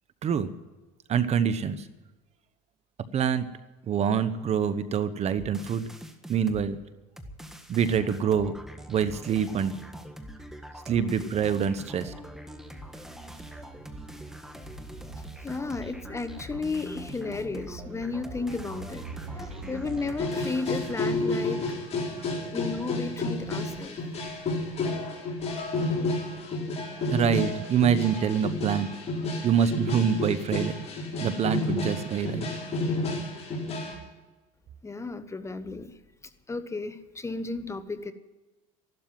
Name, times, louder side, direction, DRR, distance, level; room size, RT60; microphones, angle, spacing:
voice 1, 1.1-1.9 3.1-3.5 3.9-5.9 6.3-6.8 7.7-8.6 8.9-9.8 10.9-12.1 22.1-22.3 27.1-28.9 29.4-30.8 31.2-32.5, right 7 dB, 40° right, 13 dB, 1.0 m, -25 dB
sound 1, 5.4-6.7 7.2-20.9, equal, ahead, 1.6 m, -44 dB
sound 2, 11.8-20.1, right 4 dB, 85° right, 2.7 m, -46 dB
voice 2, 15.4-21.6 22.5-24.0 34.8-35.9 36.5-38.1, left 3 dB, 15° left, 11 dB, 1.0 m, -33 dB
sound 3, 20.2-33.9, left 2 dB, 40° left, 5.1 m, -30 dB
14.0 x 12.0 x 7.5 m, 1.2 s
supercardioid pair, 110°, 17 cm